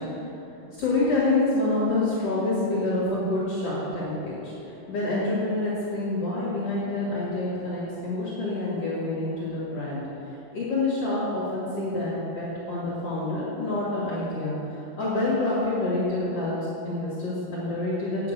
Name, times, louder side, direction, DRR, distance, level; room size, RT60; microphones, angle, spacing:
voice 1, 0.8-16.6 16.8-18.3, left 2 dB, 50° left, -7 dB, 2.6 m, -27 dB
9.8 x 7.0 x 6.6 m, 2.9 s
omnidirectional pair, 3.8 m